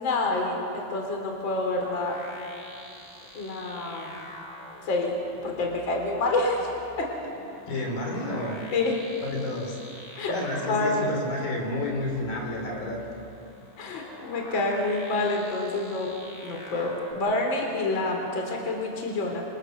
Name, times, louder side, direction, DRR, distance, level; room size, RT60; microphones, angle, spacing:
voice 1, 0.0-2.2 3.3-4.4 4.8-5.2 5.4-6.7 7.0-7.1 8.7-8.9 10.1-10.3 10.6-11.1 13.8-16.1 16.4-19.4, left 2 dB, 35° left, 1 dB, 3.8 m, -28 dB
sound 1, 1.8-17.1, left 1 dB, 15° left, 1.9 m, -46 dB
voice 2, 7.7-8.6 9.2-9.8 10.3-13.0, left 2 dB, 70° left, 0 dB, 5.6 m, -30 dB
29.0 x 26.0 x 6.8 m, 2.8 s
omnidirectional pair, 4.2 m